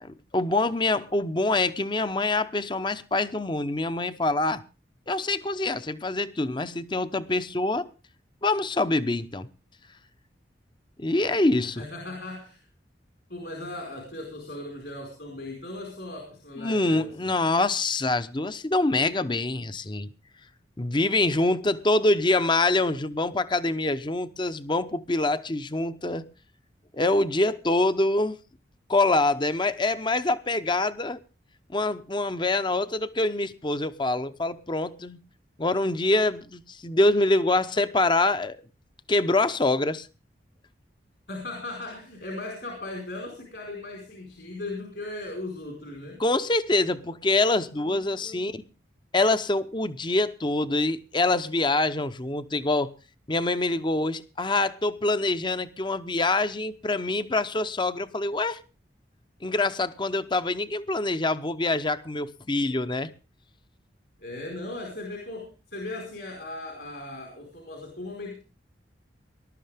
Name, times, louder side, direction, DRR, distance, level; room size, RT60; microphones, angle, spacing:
voice 1, 0.0-4.6 5.1-7.9 8.4-9.5 11.0-11.9 16.6-20.1 20.8-26.2 26.9-28.4 28.9-31.2 31.7-35.2 35.6-38.6 39.1-40.1 46.2-48.6 49.1-52.9 53.3-58.6 59.4-63.1, left 2 dB, 25° left, 0.8 m, -25 dB
voice 2, 11.6-12.6 13.3-17.3 41.3-46.2 47.7-48.6 62.7-63.0 64.2-68.4, left 2 dB, 70° left, 4.8 m, -38 dB
20.5 x 12.0 x 3.5 m
head